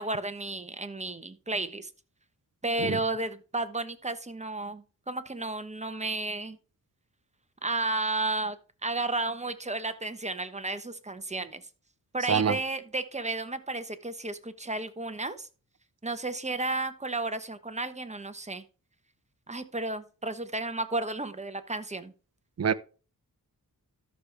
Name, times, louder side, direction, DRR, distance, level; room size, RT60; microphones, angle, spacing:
voice 1, 0.0-1.9 2.6-6.6 7.6-8.6 8.8-11.6 12.1-15.5 16.0-18.6 19.5-22.1, right 2 dB, 20° right, 1.1 m, -32 dB
voice 2, 2.8-3.0 12.3-12.6 22.6-22.7, right 7 dB, 45° right, 0.7 m, -25 dB
13.0 x 6.6 x 3.4 m
wide cardioid pair, 95°, 36 cm